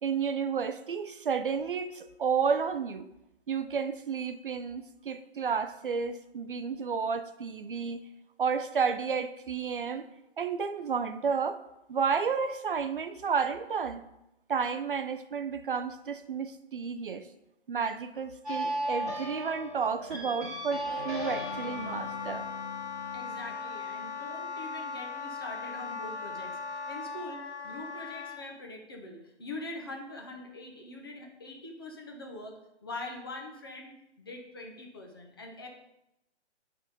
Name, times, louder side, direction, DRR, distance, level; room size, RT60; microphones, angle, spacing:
voice 1, 0.0-3.1 3.5-8.0 8.4-10.1 10.4-11.6 11.9-14.0 14.5-17.3 17.7-22.5, right 6 dB, 50° right, 10 dB, 0.4 m, -31 dB
sound 1, 18.4-23.5, equal, ahead, 1.8 m, -36 dB
Wind instrument woodwind instrument, 20.9-28.4, left 5 dB, 90° left, 1.3 m, -39 dB
voice 2, 23.1-35.7, left 2 dB, 20° left, 1 dB, 0.6 m, -43 dB
8.8 x 3.8 x 5.2 m, 0.87 s
hypercardioid pair, 175°, 34 cm